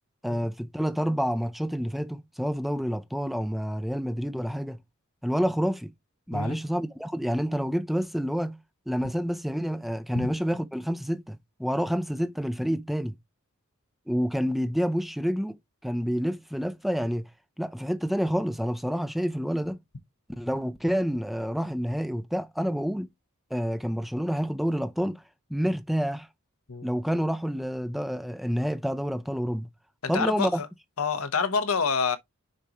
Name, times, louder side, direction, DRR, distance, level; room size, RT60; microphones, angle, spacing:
voice 1, 0.2-4.8 5.2-5.9 6.3-8.6 8.9-13.1 14.1-15.6 15.8-17.3 17.6-19.8 20.3-23.1 23.5-25.2 25.5-26.3 26.8-29.7 30.1-30.6, equal, ahead, 0.5 m, -28 dB
voice 2, 30.0-30.7 31.0-32.2, left 5 dB, 80° left, 1.0 m, -27 dB
6.6 x 5.1 x 2.9 m
head